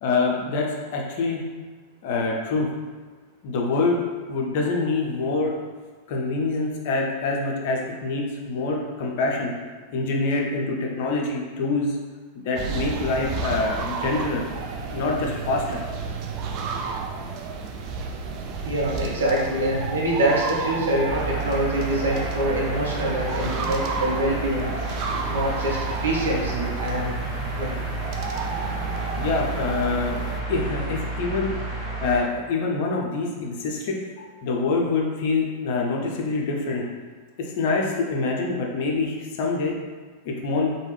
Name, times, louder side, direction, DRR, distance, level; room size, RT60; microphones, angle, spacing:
voice 1, 0.0-1.4 2.0-2.7 3.4-4.0 4.3-5.6 6.1-9.5 9.9-12.0 12.4-15.8 29.2-30.1 30.5-31.5 32.0-36.9 37.4-39.8 40.2-40.7, left 3 dB, 50° left, -1 dB, 0.5 m, -25 dB
sound 1, 12.6-30.4, right 4 dB, 40° right, 0.3 m, -32 dB
voice 2, 18.6-24.7 25.3-27.2 27.5-27.7, right 1 dB, 65° right, -4 dB, 0.8 m, -25 dB
sound 2, 21.1-32.2, right 2 dB, 20° right, 1.0 m, -31 dB
3.1 x 2.2 x 3.3 m, 1.4 s
figure-of-eight pair, 90°, 0 cm